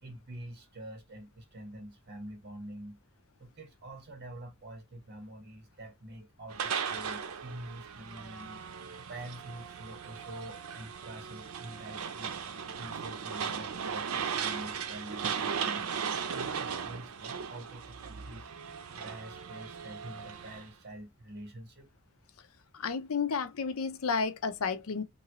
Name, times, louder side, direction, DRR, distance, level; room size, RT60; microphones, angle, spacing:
voice 1, 0.0-3.0 3.4-8.6 9.0-12.4 12.8-18.5 18.9-21.9, right 1 dB, 50° right, 1.2 m, -46 dB
sound 1, 6.5-20.7, right 7 dB, 90° right, 0.6 m, -37 dB
voice 2, 22.7-25.0, left 5 dB, 80° left, 0.6 m, -31 dB
3.0 x 2.6 x 2.8 m
head